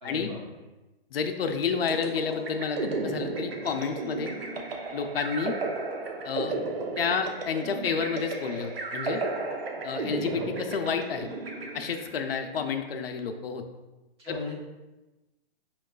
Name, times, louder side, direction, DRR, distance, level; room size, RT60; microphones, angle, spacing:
voice 1, 0.0-0.6 10.2-10.5 14.2-14.6, left 3 dB, 25° right, -4 dB, 0.9 m, -38 dB
voice 2, 1.1-4.3 4.9-5.6 6.2-6.6 7.0-9.2 9.8-11.3 11.7-13.6 14.3-14.4, left 6 dB, 70° left, 6 dB, 0.5 m, -30 dB
sound 1, 1.9-12.3, right 3 dB, 70° right, 0.8 m, -34 dB
5.6 x 2.3 x 2.2 m, 1.1 s
hypercardioid pair, 165°, 31 cm